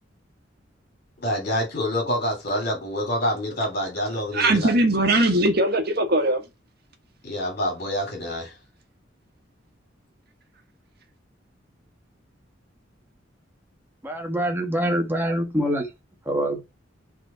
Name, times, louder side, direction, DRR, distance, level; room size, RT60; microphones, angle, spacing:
voice 1, 1.2-4.7 7.2-8.6, equal, 50° left, 3.3 m, -27 dB
voice 2, 4.3-6.5, right 1 dB, 55° right, 1.7 m, -20 dB
voice 3, 14.0-15.9 16.3-16.6, equal, 10° right, 1.7 m, -24 dB
6.2 x 4.4 x 6.3 m
head